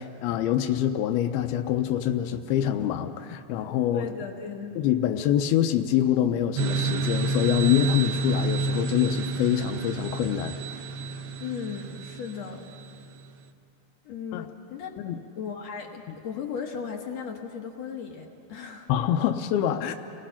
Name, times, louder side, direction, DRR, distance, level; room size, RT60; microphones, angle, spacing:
voice 1, 0.0-4.1 4.8-10.6 14.3-14.5 15.0-15.2 18.9-19.9, left 11 dB, 80° left, 4 dB, 2.5 m, -25 dB
voice 2, 3.9-4.8 11.4-12.7 14.0-14.9 15.4-18.9, left 6 dB, 60° left, 1 dB, 1.9 m, -36 dB
sound 1, 6.6-13.1, right 3 dB, 75° right, 2.6 m, -29 dB
29.5 x 20.5 x 5.8 m, 2.6 s
omnidirectional pair, 4.6 m